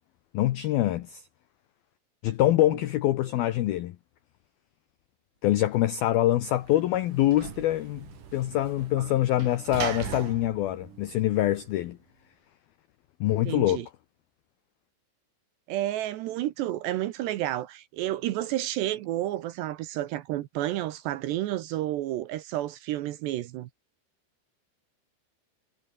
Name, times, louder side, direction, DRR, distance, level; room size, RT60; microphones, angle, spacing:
voice 1, 0.3-1.2 2.2-4.0 5.4-8.1 8.3-12.0 13.2-13.9, left 14 dB, 80° left, 2.1 m, -25 dB
Sliding door / Slam, 6.0-11.9, right 8 dB, 50° right, 3.5 m, -40 dB
voice 2, 13.3-13.9 15.7-23.7, right 14 dB, 75° right, 2.8 m, -31 dB
omnidirectional pair, 5.7 m